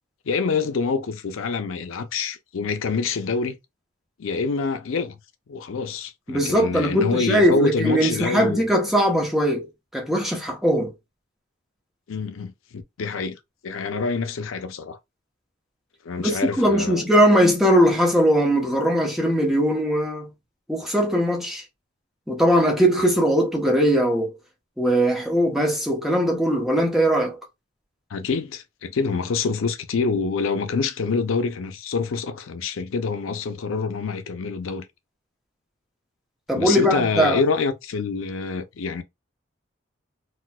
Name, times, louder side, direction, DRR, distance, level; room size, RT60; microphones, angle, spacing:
voice 1, 0.3-3.6 4.2-5.2 5.5-8.6 12.1-15.0 16.0-17.0 28.1-34.9 36.5-39.0, left 4 dB, 80° left, 0.5 m, -26 dB
voice 2, 6.3-9.7 9.9-10.9 16.2-20.3 20.7-21.6 22.3-24.3 24.8-27.4 36.5-37.4, equal, ahead, 0.7 m, -20 dB
4.2 x 2.1 x 2.2 m
head